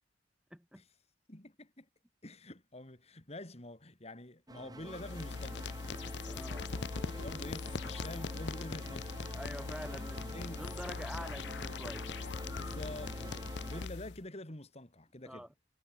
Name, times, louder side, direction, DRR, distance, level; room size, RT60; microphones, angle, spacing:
voice 1, 0.5-0.8 6.1-6.7 9.3-10.3 10.5-12.1 15.2-15.5, equal, 5° right, 5.5 m, -46 dB
voice 2, 1.3-1.9 2.2-5.7 6.4-9.2 9.9-10.6 12.6-15.5, left 1 dB, 35° left, 3.5 m, -47 dB
sound 1, 4.5-13.9, right 1 dB, 20° right, 2.1 m, -48 dB
sound 2, 4.8-14.2, left 4 dB, 75° left, 0.6 m, -41 dB
head